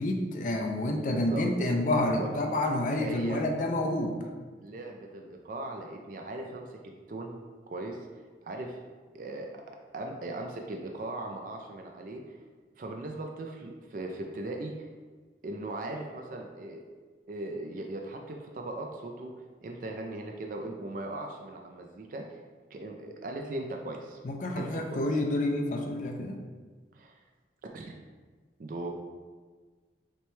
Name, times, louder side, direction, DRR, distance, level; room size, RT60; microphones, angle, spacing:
voice 1, 0.0-4.2 24.2-26.4, left 1 dB, 45° left, 3 dB, 0.4 m, -28 dB
voice 2, 1.0-1.4 2.2-2.3 3.0-3.4 4.6-6.6 7.1-7.4 7.7-8.8 9.1-9.6 9.9-12.4 12.8-14.9 15.4-16.8 17.3-19.3 19.6-22.2 22.7-24.2 24.6-25.0 26.9-27.2 27.7-27.9 28.6-28.9, right 2 dB, 45° right, 2 dB, 0.3 m, -38 dB
5.8 x 2.2 x 3.1 m, 1.4 s
head